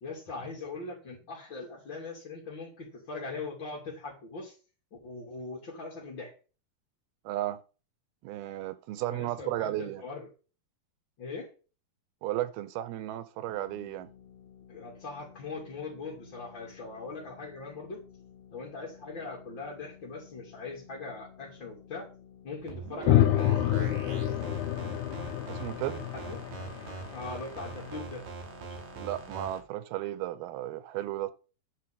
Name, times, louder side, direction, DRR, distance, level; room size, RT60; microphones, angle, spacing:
voice 1, 0.0-4.6 5.0-6.3 9.1-10.3 11.2-11.5 14.7-18.0 18.5-22.1 22.4-24.0 26.1-26.4 27.1-28.2, left 3 dB, 35° left, 3.4 m, -40 dB
voice 2, 7.2-7.6 8.2-10.0 12.2-14.1 25.5-26.1 29.0-31.3, right 14 dB, 90° right, 2.8 m, -34 dB
sound 1, 13.5-29.4, left 8 dB, 50° left, 3.2 m, -54 dB
sound 2, 22.6-29.6, right 4 dB, 50° right, 3.9 m, -42 dB
sound 3, 23.1-27.7, left 13 dB, 75° left, 1.8 m, -28 dB
10.0 x 5.2 x 8.4 m
omnidirectional pair, 4.3 m